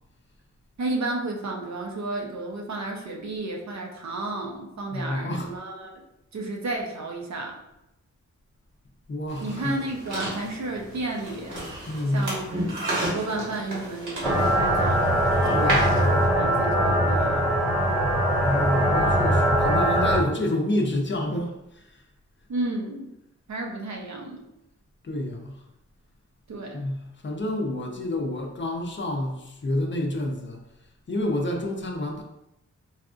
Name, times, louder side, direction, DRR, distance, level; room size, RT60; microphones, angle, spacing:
voice 1, 0.8-5.9 6.3-7.5 9.4-11.5 12.1-12.5 12.9-15.0 15.4-17.5 22.5-23.1 23.5-24.5 26.5-26.8, right 2 dB, 65° right, 0.7 m, -32 dB
voice 2, 4.9-5.5 9.1-9.7 11.9-12.3 15.5-15.9 18.4-22.0 25.0-25.6 26.7-27.0 27.2-30.6 31.1-32.2, left 1 dB, 40° left, 0.5 m, -28 dB
sound 1, 9.3-16.3, right 1 dB, 85° right, 1.4 m, -32 dB
sound 2, 14.2-20.2, equal, ahead, 1.2 m, -21 dB
4.0 x 2.4 x 2.4 m
wide cardioid pair, 100°, 30 cm